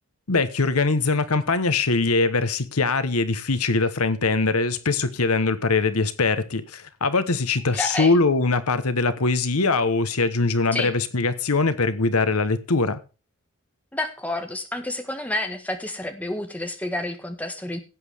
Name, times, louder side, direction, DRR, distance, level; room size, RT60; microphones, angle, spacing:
voice 1, 0.3-13.0, left 3 dB, 80° left, 1.2 m, -22 dB
voice 2, 7.7-8.1 10.7-10.9 13.9-17.8, left 1 dB, 5° left, 1.6 m, -29 dB
17.0 x 8.4 x 3.6 m
head